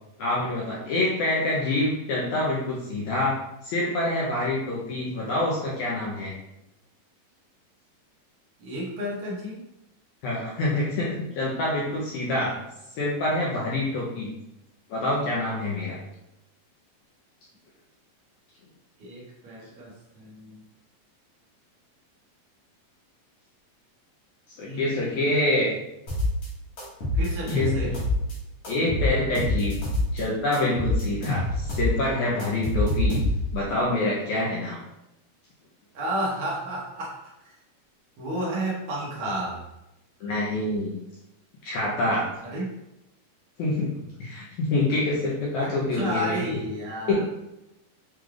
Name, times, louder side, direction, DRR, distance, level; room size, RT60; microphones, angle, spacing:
voice 1, 0.2-3.4 3.6-6.3 10.2-12.5 13.0-14.3 14.9-16.0 24.6-25.7 27.5-28.0 28.7-29.8 30.1-33.2 33.5-34.8 40.2-41.0 41.6-42.3 43.6-43.9 44.2-46.4 47.1-47.2, left 2 dB, 75° left, -5 dB, 1.8 m, -26 dB
voice 2, 8.6-9.6 19.0-20.6 24.6-25.7 27.1-27.9 35.9-37.2 38.2-39.6 42.4-42.7 45.6-47.2, right 1 dB, 80° right, -5 dB, 1.2 m, -32 dB
sound 1, 26.1-26.5 26.8-28.3 28.6-30.2 30.5-33.6, left 1 dB, 55° left, 2.0 m, -26 dB
6.2 x 3.3 x 2.4 m, 0.90 s
omnidirectional pair, 4.1 m